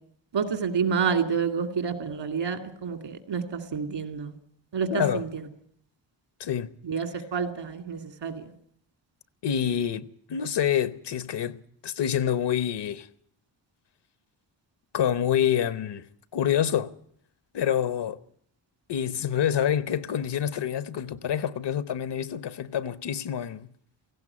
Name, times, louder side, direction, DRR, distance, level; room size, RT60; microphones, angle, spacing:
voice 1, 0.3-4.3 4.7-5.4 6.8-8.5, right 6 dB, 70° right, 2.5 m, -29 dB
voice 2, 4.9-5.2 6.4-6.7 9.4-13.1 14.9-16.0 16.3-16.9 17.5-18.2 18.9-23.7, left 9 dB, 65° left, 0.9 m, -27 dB
18.0 x 16.0 x 9.7 m
wide cardioid pair, 175°, 45 cm